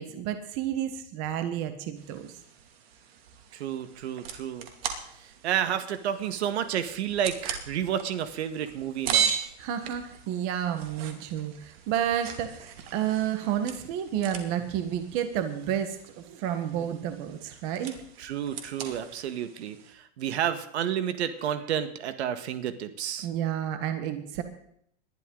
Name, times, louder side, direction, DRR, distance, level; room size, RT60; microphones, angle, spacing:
voice 1, 0.0-2.3 9.6-18.0 23.2-24.4, right 10 dB, 30° right, 9 dB, 1.4 m, -30 dB
sound 1, 2.0-19.9, right 8 dB, 65° right, 2.6 m, -38 dB
voice 2, 3.5-4.7 5.2-9.3 18.2-23.3, right 9 dB, 80° right, 10 dB, 1.6 m, -31 dB
20.0 x 12.0 x 3.9 m, 0.69 s
supercardioid pair, 180°, 33 cm